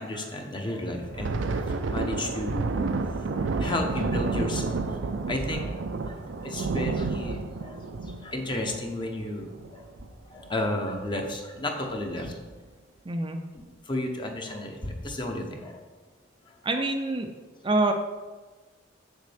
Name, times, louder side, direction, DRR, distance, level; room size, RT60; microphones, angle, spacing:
voice 1, 0.0-1.3 1.9-2.7 3.6-5.0 5.3-7.8 8.2-9.8 10.3-12.4 13.9-15.8, left 1 dB, 25° left, 3 dB, 0.9 m, -32 dB
Thunder, 1.0-10.1 10.4-10.6 11.0-11.2 11.9-12.3, right 3 dB, 85° right, 0.5 m, -30 dB
voice 2, 13.1-13.4 16.6-17.3 17.6-17.9, right 2 dB, 25° right, 4 dB, 0.5 m, -25 dB
7.2 x 6.4 x 3.4 m, 1.3 s
head